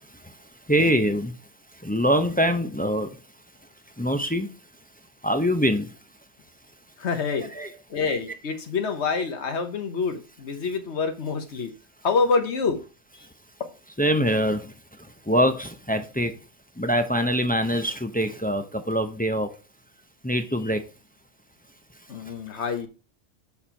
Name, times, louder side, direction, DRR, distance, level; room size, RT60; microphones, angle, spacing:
voice 1, 0.7-1.3 1.9-3.1 4.0-4.5 5.2-5.9 7.6-7.7 14.0-14.6 15.3-16.3 16.8-19.5 20.2-20.8, equal, 15° left, 0.3 m, -23 dB
voice 2, 7.0-7.5 7.9-11.7 12.0-12.8 13.1-13.3 22.1-22.9, left 4 dB, 65° left, 1.3 m, -26 dB
7.1 x 4.3 x 4.4 m
omnidirectional pair, 1.3 m